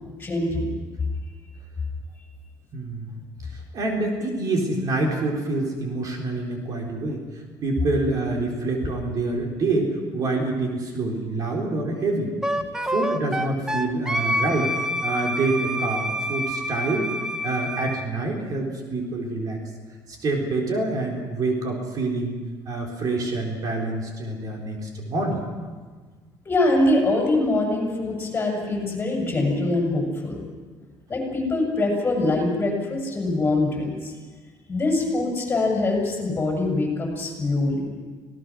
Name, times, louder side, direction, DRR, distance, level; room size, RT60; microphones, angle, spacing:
voice 1, 0.2-0.7 26.5-30.4 31.1-34.1 34.7-37.9, left 2 dB, 25° left, 0 dB, 7.0 m, -23 dB
voice 2, 2.7-7.2 7.6-12.3 12.9-17.1 17.4-19.6 20.1-22.3 22.7-25.4, right 2 dB, 50° right, 1 dB, 4.2 m, -26 dB
Wind instrument woodwind instrument, 12.4-18.1, equal, 5° right, 1.2 m, -27 dB
26.0 x 18.5 x 6.3 m, 1.4 s
cardioid pair, 125°, 8 cm